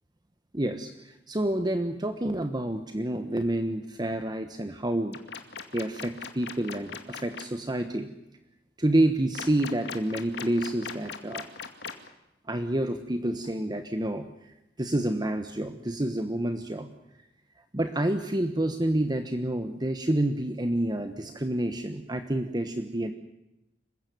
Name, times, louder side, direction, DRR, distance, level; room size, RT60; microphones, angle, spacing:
voice 1, 0.5-5.2 5.7-8.1 8.8-11.4 12.5-14.3 14.8-16.9 17.7-23.1, right 1 dB, 25° right, 8 dB, 1.2 m, -28 dB
sound 1, 5.1-7.4 9.3-12.1, left 6 dB, 65° left, 2.4 m, -38 dB
27.0 x 16.0 x 9.4 m, 0.92 s
head